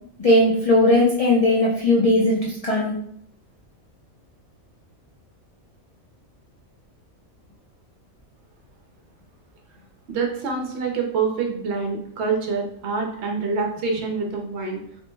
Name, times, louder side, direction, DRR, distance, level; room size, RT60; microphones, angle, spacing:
voice 1, 0.2-3.0, left 1 dB, 70° left, -4 dB, 0.3 m, -18 dB
voice 2, 10.1-14.8, right 4 dB, 60° right, 1 dB, 0.9 m, -26 dB
3.1 x 2.1 x 3.2 m, 0.68 s
omnidirectional pair, 1.4 m